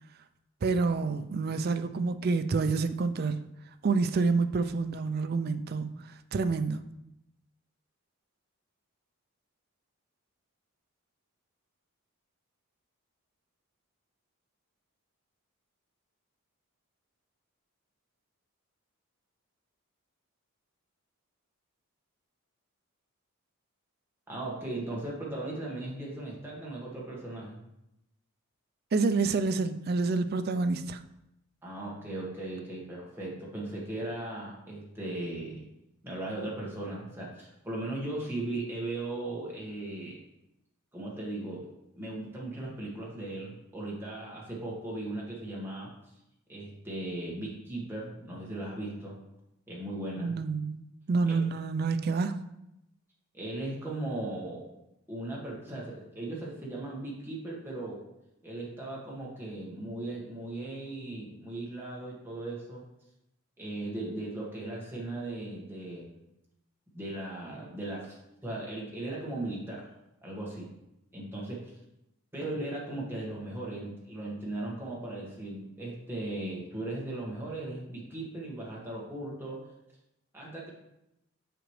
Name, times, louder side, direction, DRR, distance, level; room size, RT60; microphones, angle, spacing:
voice 1, 0.6-3.4 3.8-5.9 6.3-6.8 28.9-31.0 50.2-50.8 51.1-52.4, right 4 dB, 45° right, 9 dB, 0.4 m, -28 dB
voice 2, 24.3-27.6 31.6-35.7 36.0-40.2 40.9-41.6 42.0-45.9 46.5-49.2 49.7-50.4 51.3-51.4 53.3-54.7 55.1-58.0 58.4-62.8 63.6-66.1 66.9-69.9 70.2-70.7 71.1-71.7 72.3-79.6 80.3-80.7, right 2 dB, 10° right, -4 dB, 1.5 m, -37 dB
8.0 x 4.9 x 3.2 m, 0.85 s
head